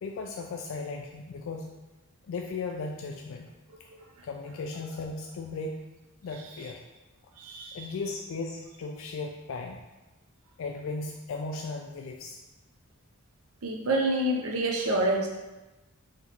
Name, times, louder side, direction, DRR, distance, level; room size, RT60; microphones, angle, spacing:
voice 1, 0.0-1.8 2.3-3.5 3.8-3.9 4.2-5.9 6.2-6.8 7.7-9.8 10.6-12.4, left 3 dB, 65° left, 2 dB, 0.3 m, -36 dB
voice 2, 7.4-7.9 13.6-15.3, right 1 dB, 80° right, 0 dB, 0.5 m, -27 dB
5.8 x 2.9 x 2.9 m, 1.1 s
head